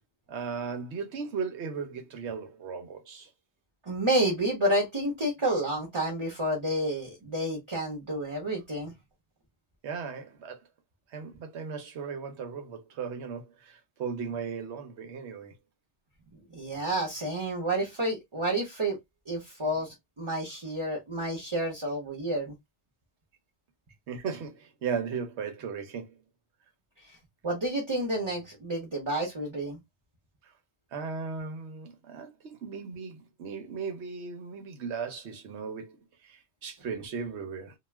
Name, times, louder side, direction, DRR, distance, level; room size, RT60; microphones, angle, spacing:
voice 1, 0.3-3.3 9.8-10.6 11.1-15.5 24.1-26.1 30.4-30.5 30.9-36.0 36.2-37.7, right 5 dB, 75° right, 1.0 m, -36 dB
voice 2, 3.9-8.9 16.5-19.0 19.3-22.5 27.4-29.8, right 1 dB, 30° right, 0.8 m, -30 dB
2.4 x 2.3 x 3.1 m
omnidirectional pair, 1.2 m